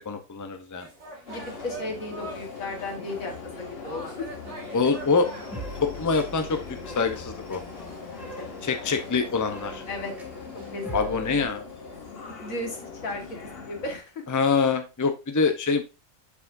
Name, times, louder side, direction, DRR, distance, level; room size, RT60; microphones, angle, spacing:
voice 1, 0.0-0.9 4.7-5.3 5.8-6.6 6.9-7.6 8.6-9.8 10.9-11.6 14.3-15.8, left 4 dB, 15° left, 7 dB, 0.7 m, -25 dB
sound 1, 0.8-13.6, right 2 dB, 75° right, 2.7 m, -46 dB
voice 2, 1.3-4.3 8.1-8.6 9.9-10.1 10.7-11.1 12.3-14.2, left 2 dB, 85° left, 2 dB, 2.1 m, -35 dB
Subway metro underground, 1.3-14.0, left 5 dB, 50° left, 1.3 m, -41 dB
sound 2, 4.4-11.5, equal, ahead, 2.3 m, -42 dB
7.2 x 6.9 x 2.6 m, 0.27 s
omnidirectional pair, 1.4 m